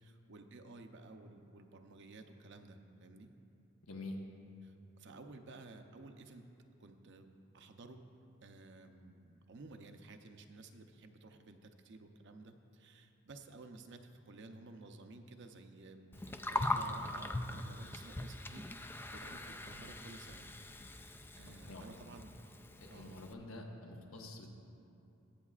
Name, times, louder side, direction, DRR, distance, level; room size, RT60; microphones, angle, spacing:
voice 1, 0.0-3.3 4.6-6.4 6.8-7.3 7.5-8.0 8.4-18.7 19.1-20.5 20.9-22.3 22.9-23.2, right 2 dB, 60° right, 5 dB, 0.7 m, -54 dB
voice 2, 3.9-4.2 21.6-21.8 22.8-24.5, left 2 dB, 75° left, 1 dB, 1.2 m, -47 dB
Gurgling, 16.1-23.3, left 2 dB, 10° left, 0.3 m, -41 dB
22.0 x 8.2 x 2.4 m, 2.7 s
head